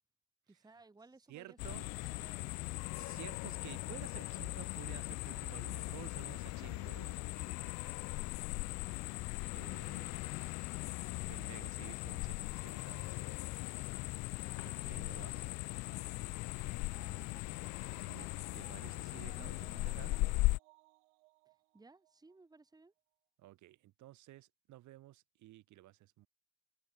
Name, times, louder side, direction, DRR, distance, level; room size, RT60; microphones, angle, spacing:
voice 1, 0.5-2.7 3.3-3.6 9.8-10.3 14.4-15.6 17.0-17.6 19.3-19.5 21.7-22.9, right 3 dB, 10° right, 1.5 m, -62 dB
voice 2, 1.3-1.8 2.9-7.2 7.5-7.8 9.5-10.2 11.3-13.5 14.6-15.5 15.8-16.1 16.7-17.0 18.1-19.6 19.8-20.2 23.4-26.3, right 16 dB, 60° right, 1.5 m, -53 dB
sound 1, 1.6-20.6, left 21 dB, 55° left, 0.5 m, -39 dB
sound 2, 7.7-11.6, left 24 dB, 85° left, 2.2 m, -63 dB
sound 3, 15.7-22.4 22.7-22.8, right 26 dB, 85° right, 0.9 m, -65 dB
open air
supercardioid pair, 85°, 34 cm